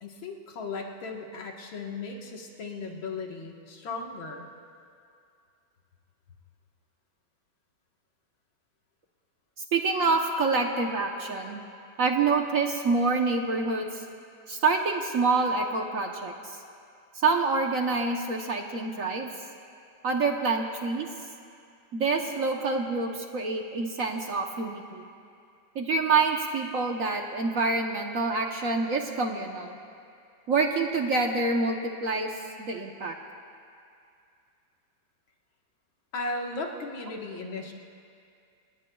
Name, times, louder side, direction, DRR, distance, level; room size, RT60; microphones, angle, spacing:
voice 1, 0.0-4.5 36.1-37.7, left 3 dB, 85° left, 1 dB, 2.2 m, -36 dB
voice 2, 9.7-11.6 12.0-14.0 14.5-16.6 17.2-19.3 20.0-21.1 21.9-25.0 25.7-29.8 30.5-32.3 32.6-33.1, right 4 dB, 55° right, 3 dB, 1.1 m, -27 dB
27.0 x 19.5 x 2.3 m, 2.4 s
omnidirectional pair, 2.1 m